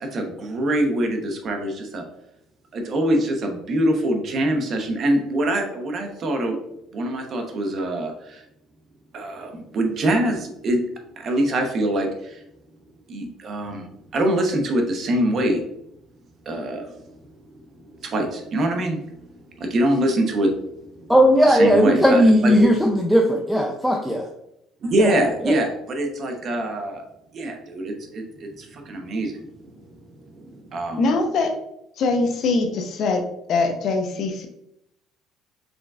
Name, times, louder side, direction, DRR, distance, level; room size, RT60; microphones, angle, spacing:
voice 1, 0.0-2.0 2.7-6.6 6.9-8.4 9.1-10.8 11.2-12.4 13.1-13.8 14.1-15.6 16.5-17.0 18.0-19.2 19.6-20.5 21.0-21.1 21.4-22.5 24.8-27.0 27.3-29.4 30.3-31.1, right 1 dB, 45° right, 3 dB, 0.9 m, -24 dB
voice 2, 21.1-24.3 25.0-25.1 25.4-25.6, equal, ahead, 1 dB, 0.4 m, -17 dB
voice 3, 31.0-31.5 32.0-33.2 33.5-34.5, left 3 dB, 55° left, 5 dB, 0.7 m, -22 dB
5.1 x 3.7 x 2.4 m, 0.81 s
cardioid pair, 120°, 0 cm